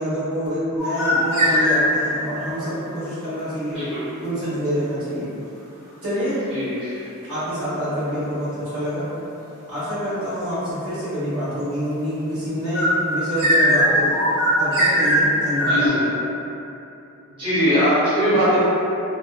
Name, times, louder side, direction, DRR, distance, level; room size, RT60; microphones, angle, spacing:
voice 1, 0.0-3.8 4.2-5.3 6.0-6.4 7.2-9.1 9.7-14.2 14.6-16.1, equal, 70° right, -13 dB, 1.2 m, -26 dB
sound 1, 0.8-2.2 12.7-15.9, equal, 90° right, 1.3 m, -19 dB
voice 2, 6.5-7.1 15.7-16.0 17.4-18.6, equal, 25° right, -15 dB, 0.8 m, -20 dB
2.6 x 2.1 x 2.3 m, 2.8 s
head